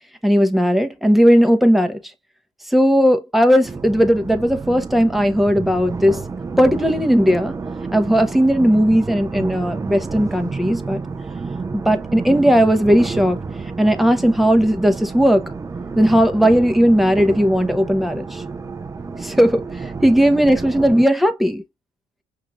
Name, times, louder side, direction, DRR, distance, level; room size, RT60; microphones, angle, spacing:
voice 1, 0.2-2.0 2.7-6.2 6.6-7.5 7.9-11.0 11.7-13.4 13.8-15.4 16.0-18.4 19.2-19.7 20.0-21.6, equal, ahead, 1.0 m, -16 dB
sound 1, 3.6-21.1, right 4 dB, 20° right, 0.5 m, -30 dB
5.7 x 2.7 x 2.4 m
cardioid pair, 110°, 17 cm